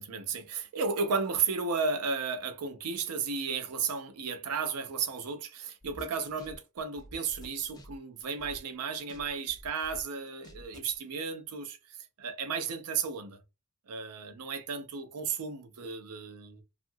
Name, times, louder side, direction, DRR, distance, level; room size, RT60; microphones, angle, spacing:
voice 1, 0.0-13.4 13.9-16.6, right 5 dB, 85° right, 0.5 m, -34 dB
sound 1, 5.8-8.7 9.1-11.0, equal, 20° left, 0.5 m, -50 dB
2.7 x 2.5 x 2.6 m
head